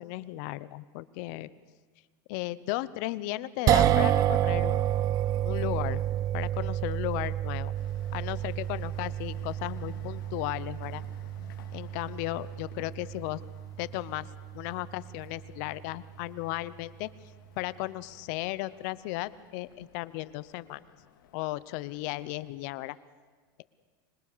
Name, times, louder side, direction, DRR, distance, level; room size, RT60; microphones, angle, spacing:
voice 1, 0.0-1.5 2.3-4.8 5.4-6.0 6.3-7.7 8.1-11.0 11.7-13.4 13.8-14.3 14.5-17.1 17.6-20.8 21.3-23.0, left 18 dB, 60° left, 18 dB, 0.8 m, -35 dB
sound 1, 3.7-16.0, right 12 dB, 35° right, 0.7 m, -30 dB
sound 2, 7.7-22.5, left 9 dB, 85° left, 2.3 m, -57 dB
25.5 x 21.0 x 6.8 m, 1.5 s
supercardioid pair, 145°, 11 cm